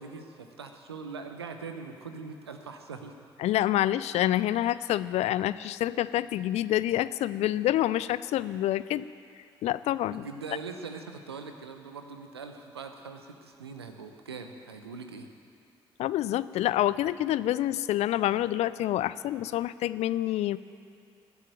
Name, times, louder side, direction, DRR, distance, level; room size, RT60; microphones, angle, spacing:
voice 1, 0.0-3.1 10.1-15.3, right 4 dB, 85° right, 6 dB, 0.9 m, -42 dB
voice 2, 3.4-9.1 9.6-10.2 16.0-20.6, left 13 dB, 55° left, 16 dB, 0.5 m, -27 dB
19.5 x 8.2 x 9.0 m, 2.3 s
figure-of-eight pair, 45°, 13 cm